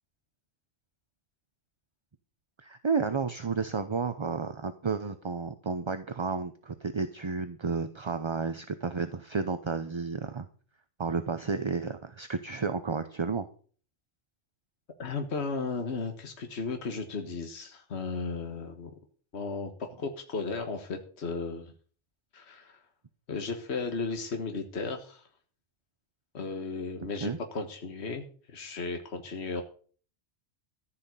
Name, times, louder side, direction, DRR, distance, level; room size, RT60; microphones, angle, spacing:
voice 1, 2.6-10.5 11.0-13.5 27.2-27.4, right 5 dB, 30° right, 10 dB, 0.6 m, -32 dB
voice 2, 15.0-18.9 19.3-21.7 22.3-22.8 23.3-25.2 26.3-29.6, left 4 dB, 65° left, 5 dB, 1.7 m, -35 dB
14.5 x 5.8 x 8.2 m, 0.44 s
omnidirectional pair, 1.2 m